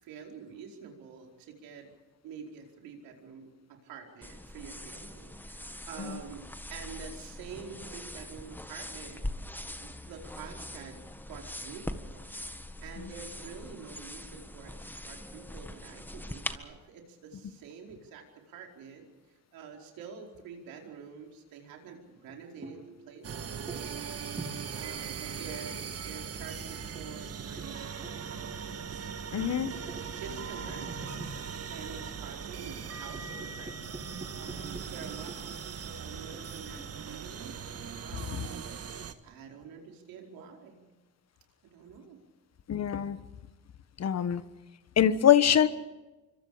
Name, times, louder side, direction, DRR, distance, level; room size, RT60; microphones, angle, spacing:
voice 1, 0.0-1.9 2.2-6.4 6.7-9.2 9.8-12.3 12.8-19.1 19.5-22.8 23.1-24.2 24.7-28.8 29.1-31.2 31.7-37.6 38.0-38.7 39.2-40.8 41.6-42.2, right 6 dB, 75° right, 1 dB, 4.8 m, -47 dB
sound 1, 4.2-16.6, left 1 dB, 5° left, 1.6 m, -42 dB
sound 2, 22.2-25.6 26.2-32.4 32.8-35.7 36.3-37.0, right 2 dB, 20° right, 7.6 m, -47 dB
sound 3, 23.2-39.1, right 6 dB, 45° right, 1.6 m, -40 dB
voice 2, 29.3-29.7 42.7-43.2 44.0-44.4 45.0-45.7, left 10 dB, 45° left, 13 dB, 1.4 m, -23 dB
26.5 x 24.5 x 5.1 m, 1.1 s
supercardioid pair, 80°, 35 cm